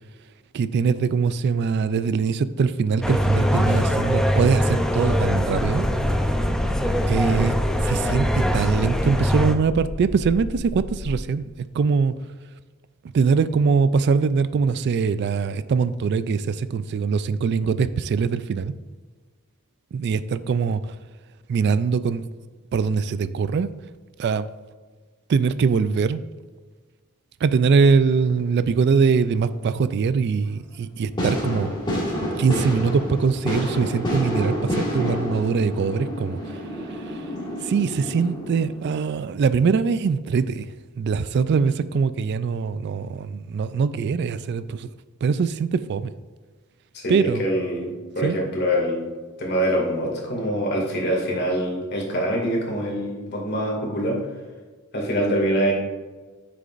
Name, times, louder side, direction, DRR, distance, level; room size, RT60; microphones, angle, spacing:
voice 1, 0.5-5.9 7.1-7.5 7.8-11.4 11.7-12.1 13.1-18.7 19.9-20.8 21.5-22.2 22.7-23.7 24.2-24.4 25.3-26.2 27.4-31.7 32.4-36.4 37.6-40.7 41.0-44.9 45.2-46.1 47.1-47.4 48.2-48.4, right 5 dB, 55° right, 14 dB, 0.3 m, -22 dB
sound 1, 3.0-9.5, equal, 5° left, 0.5 m, -22 dB
sound 2, 5.3-11.2, left 1 dB, 75° left, 0.6 m, -31 dB
sound 3, 28.1-28.7 29.1-29.9 30.4-30.5 31.2-38.8, equal, 20° left, 2.0 m, -29 dB
voice 2, 46.9-49.0 49.4-54.2 54.9-55.7, equal, 50° left, -1 dB, 2.2 m, -24 dB
9.0 x 6.7 x 2.5 m, 1.4 s
head